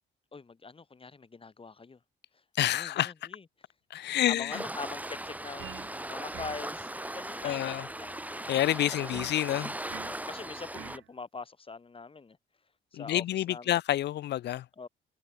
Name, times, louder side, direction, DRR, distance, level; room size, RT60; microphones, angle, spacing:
voice 1, 0.3-2.0 2.7-3.4 4.2-8.4 8.9-9.2 10.0-12.4 12.9-13.8 14.8-14.9, left 4 dB, 25° left, 2.6 m, -44 dB
voice 2, 2.6-3.1 3.9-4.6 7.4-7.9 8.5-9.7 12.9-14.6, left 13 dB, 60° left, 0.4 m, -28 dB
Waves surf, 4.5-11.0, right 1 dB, 10° right, 5.1 m, -39 dB
sound 1, 5.6-6.0 6.3-6.7 9.1-9.4 9.9-10.2 10.7-11.1, right 14 dB, 80° right, 1.8 m, -46 dB
cardioid pair, 90°, 20 cm